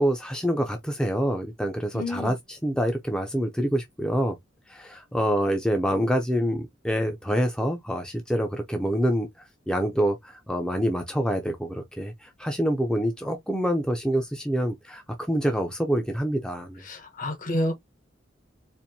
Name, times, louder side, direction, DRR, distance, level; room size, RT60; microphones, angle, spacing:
voice 1, 0.0-4.4 4.7-9.3 9.7-16.8, equal, 5° left, 0.6 m, -26 dB
voice 2, 1.9-2.3 16.9-17.7, left 1 dB, 45° left, 1.1 m, -29 dB
4.3 x 2.7 x 2.6 m
head